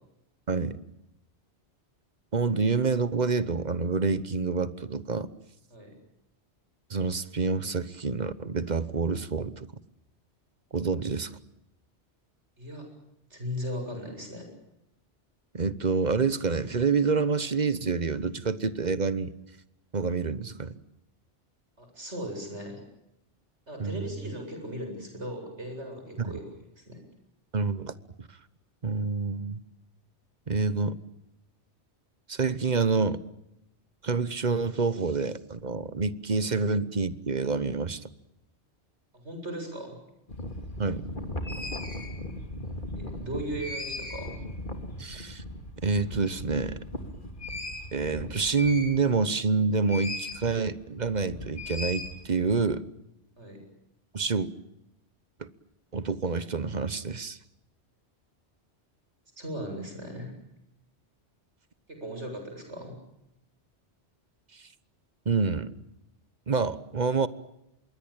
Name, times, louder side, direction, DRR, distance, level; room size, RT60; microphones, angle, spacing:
voice 1, 0.5-0.8 2.3-5.3 6.9-9.6 10.7-11.4 15.5-19.3 19.9-20.7 23.8-24.1 26.2-26.4 27.5-28.3 28.8-29.6 30.5-31.0 32.3-33.2 34.0-38.1 40.8-41.0 45.0-45.4 45.8-46.8 47.9-52.8 54.1-54.5 55.4-55.5 55.9-57.4 64.5-64.6 65.2-65.7 66.5-67.3, right 4 dB, 40° right, 15 dB, 1.2 m, -27 dB
voice 2, 13.3-14.5 21.8-22.8 23.7-26.4 26.8-27.0 36.3-36.5 39.1-40.0 43.0-44.4 53.4-53.6 59.4-60.3 61.9-63.0, equal, 75° right, 4 dB, 8.3 m, -37 dB
sound 1, 40.3-49.3 49.9-50.5 50.8-52.6, left 1 dB, 45° left, 3.2 m, -37 dB
26.0 x 22.5 x 8.9 m, 0.84 s
omnidirectional pair, 1.2 m